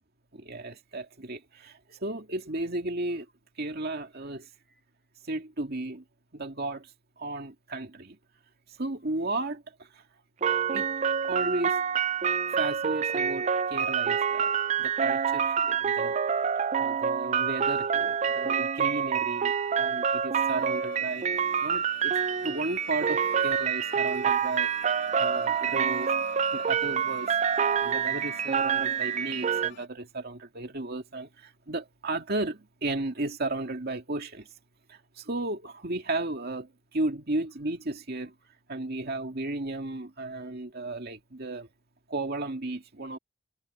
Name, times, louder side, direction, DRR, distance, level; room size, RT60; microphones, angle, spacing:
voice 1, 0.3-3.3 3.6-4.5 5.3-6.0 6.3-6.9 7.2-8.2 8.8-10.0 10.7-10.9 11.3-11.8 12.5-14.5 14.8-16.2 16.8-21.3 21.6-22.2 22.4-26.1 26.5-27.3 27.8-34.5 34.9-38.3 38.7-41.7 42.1-43.2, right 2 dB, 50° right, 2.2 m, -34 dB
sound 1, 10.4-29.7, right 7 dB, 35° right, 0.4 m, -27 dB
sound 2, 20.3-29.9, left 7 dB, 50° left, 2.0 m, -47 dB
head